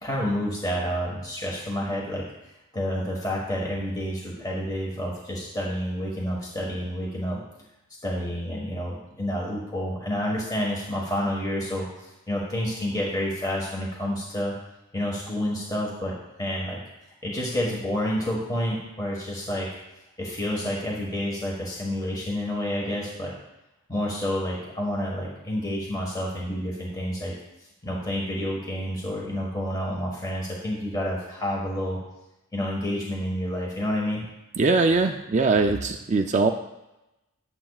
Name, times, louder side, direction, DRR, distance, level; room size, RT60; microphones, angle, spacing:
voice 1, 0.0-2.2 2.7-7.4 8.0-14.5 14.9-16.8 17.2-19.7 20.2-23.3 23.9-27.3 27.8-32.0 32.5-34.2, equal, 15° left, -3 dB, 1.5 m, -29 dB
voice 2, 34.6-36.5, right 3 dB, 35° right, 4 dB, 0.4 m, -21 dB
15.0 x 9.9 x 2.4 m, 0.95 s
head